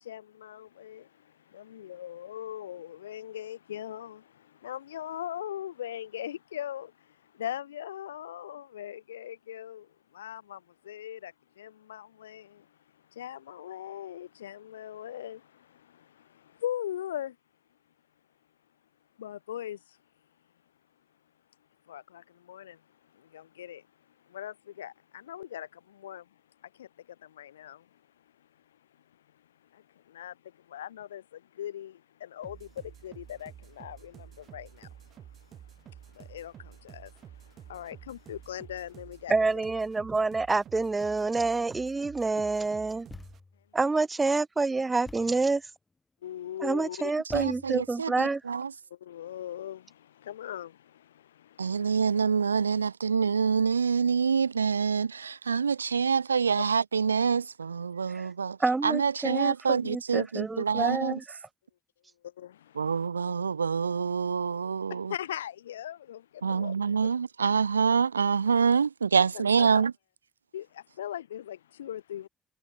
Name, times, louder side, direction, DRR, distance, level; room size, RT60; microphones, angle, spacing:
voice 1, 0.0-17.4 19.2-20.0 21.8-39.6 46.2-47.1 48.9-52.3 62.2-63.1 64.9-66.7 67.0-67.1 69.3-69.9 70.5-72.3, left 11 dB, 80° left, 1.3 m, -41 dB
sound 1, 32.4-43.4, right 10 dB, 55° right, 2.4 m, -50 dB
voice 2, 39.3-43.1 43.7-45.6 46.6-48.4 58.1-58.3 58.6-61.4, right 3 dB, 25° right, 0.5 m, -28 dB
Thump thud, 43.1-43.7 45.0-45.5 47.3-48.0, left 3 dB, 25° left, 2.9 m, -47 dB
voice 3, 47.3-48.7 51.6-58.6 58.8-61.2 62.8-65.1 66.4-69.9, right 6 dB, 85° right, 0.3 m, -26 dB
figure-of-eight pair, 40°, 0 cm